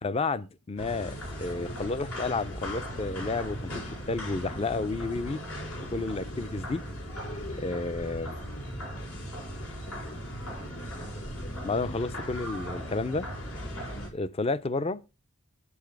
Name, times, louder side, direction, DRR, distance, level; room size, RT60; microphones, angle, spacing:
voice 1, 0.0-3.7 4.1-5.4 5.9-6.8 7.5-8.4 11.6-13.3 14.1-15.0, left 3 dB, 25° left, 0.4 m, -31 dB
sound 1, 0.8-14.1, equal, 75° left, 5.4 m, -38 dB
9.5 x 7.1 x 4.6 m
head